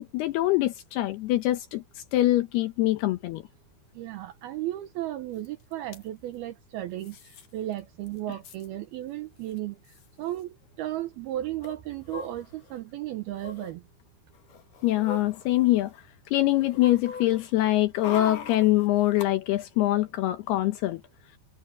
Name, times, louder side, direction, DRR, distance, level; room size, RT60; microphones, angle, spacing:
voice 1, 0.0-1.8 2.1-3.4 14.8-15.9 16.3-21.0, left 16 dB, 75° left, 2.5 m, -24 dB
voice 2, 4.0-7.2 7.5-9.8 10.2-13.8, right 14 dB, 75° right, 2.3 m, -34 dB
sound 1, 5.4-5.5 5.7-6.0 7.0-7.5 7.8-7.9 8.1-8.7 9.5-9.6 9.8-10.0 11.6-12.8 13.3-13.7 14.3-16.0 16.4-19.3 19.6-19.7, left 5 dB, 55° left, 3.0 m, -41 dB
omnidirectional pair, 5.4 m